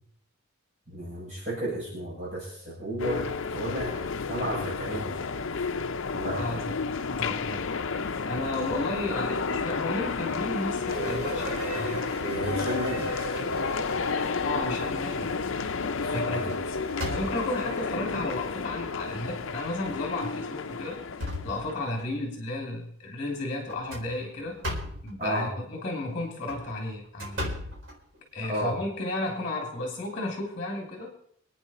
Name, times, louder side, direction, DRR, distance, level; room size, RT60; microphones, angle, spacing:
voice 1, 0.9-3.9 4.3-5.2 6.1-6.6 12.3-13.3 16.0-16.5 25.2-25.5 28.4-28.8, right 1 dB, 35° right, -8 dB, 6.9 m, -33 dB
sound 1, 3.0-22.0, left 4 dB, 65° left, 0.6 m, -31 dB
voice 2, 6.4-6.7 7.1-7.8 8.2-12.1 14.3-15.3 16.1-16.4 17.1-20.9 21.4-24.6 25.0-27.5 28.3-31.1, left 2 dB, 30° left, 1 dB, 2.9 m, -33 dB
sound 2, 10.9-18.0, right 1 dB, 90° right, 3.8 m, -37 dB
sound 3, 15.6-15.8 16.1-17.7 18.4-18.5 19.0-19.1 20.0-20.2 20.7-22.1 23.7-25.1 26.3-28.5, left 1 dB, 65° right, 4.2 m, -37 dB
26.5 x 9.2 x 4.3 m, 0.67 s
head